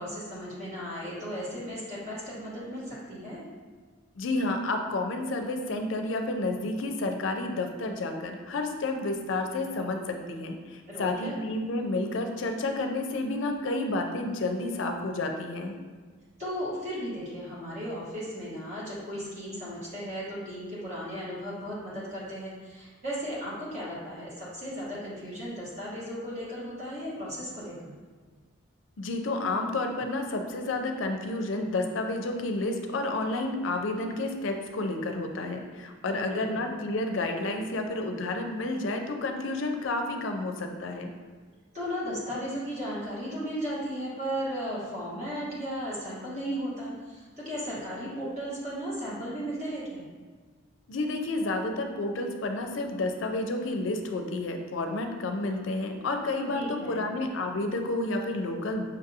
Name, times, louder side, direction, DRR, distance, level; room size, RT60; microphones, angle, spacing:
voice 1, 0.0-3.5 10.9-11.4 16.4-27.9 36.1-36.6 41.7-50.0 56.5-57.1, equal, 35° right, -8 dB, 1.2 m, -35 dB
voice 2, 4.1-15.7 29.0-41.1 50.9-58.9, left 2 dB, 75° left, 4 dB, 0.4 m, -30 dB
5.5 x 2.6 x 2.7 m, 1.5 s
head